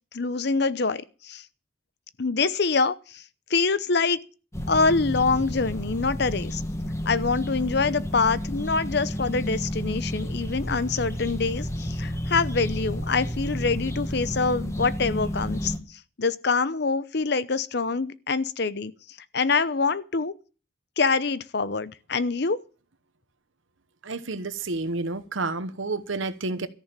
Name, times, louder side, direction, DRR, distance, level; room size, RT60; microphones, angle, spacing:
voice 1, 0.1-1.5 2.2-3.2 3.5-4.2 4.7-6.6 7.1-18.9 19.3-20.4 21.0-22.6, left 4 dB, 55° left, 0.8 m, -25 dB
sound 1, 4.5-15.8, equal, 15° left, 1.5 m, -31 dB
voice 2, 24.0-26.7, right 3 dB, 75° right, 1.1 m, -30 dB
14.0 x 6.6 x 8.9 m
head